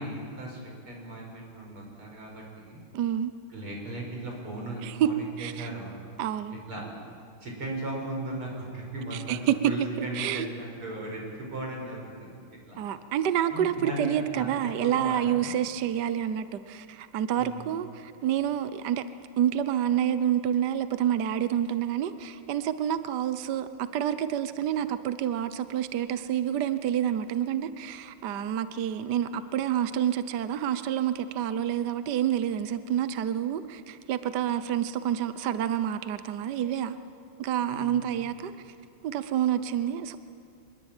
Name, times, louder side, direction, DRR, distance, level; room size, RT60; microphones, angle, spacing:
voice 1, 0.0-2.8 3.5-6.0 6.5-6.9 7.4-12.8 13.5-14.5 14.8-15.5 17.4-17.6 37.7-38.3, right 1 dB, 90° right, 0 dB, 6.6 m, -37 dB
voice 2, 2.9-3.3 4.8-5.1 5.4-5.7 6.2-6.6 9.1-9.6 10.0-10.5 12.8-19.0 19.4-37.0 37.4-38.5 39.0-40.2, right 10 dB, 60° right, 12 dB, 1.3 m, -28 dB
25.0 x 21.5 x 9.0 m, 2.3 s
omnidirectional pair, 2.3 m